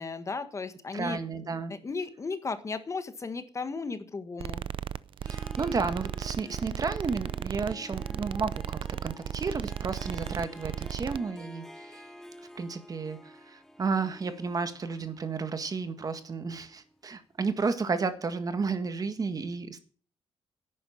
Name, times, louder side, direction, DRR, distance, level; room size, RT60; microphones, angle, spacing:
voice 1, 0.0-1.2 1.7-4.6, left 4 dB, 30° left, 10 dB, 1.5 m, -35 dB
voice 2, 0.9-1.7 5.2-12.1 12.5-19.8, right 4 dB, 35° right, 10 dB, 1.7 m, -32 dB
sound 1, 4.4-11.2, right 9 dB, 55° right, 0.5 m, -35 dB
Harp, 5.2-17.0, equal, 5° left, 1.0 m, -49 dB
11.0 x 9.5 x 6.4 m, 0.41 s
cardioid pair, 125°, 11 cm